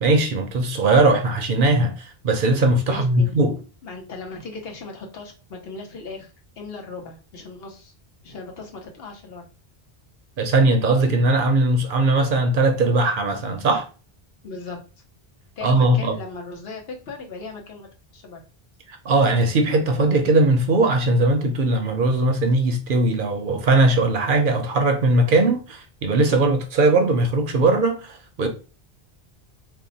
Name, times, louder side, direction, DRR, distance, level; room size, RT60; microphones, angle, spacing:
voice 1, 0.0-3.6 10.4-13.9 15.6-16.1 19.1-28.5, right 2 dB, 60° right, 0.7 m, -19 dB
voice 2, 2.9-3.4 3.8-6.3 6.6-7.9 8.2-9.4 14.4-14.8 15.6-18.4, left 3 dB, 70° left, 1.0 m, -37 dB
2.7 x 2.1 x 3.9 m
omnidirectional pair, 1.0 m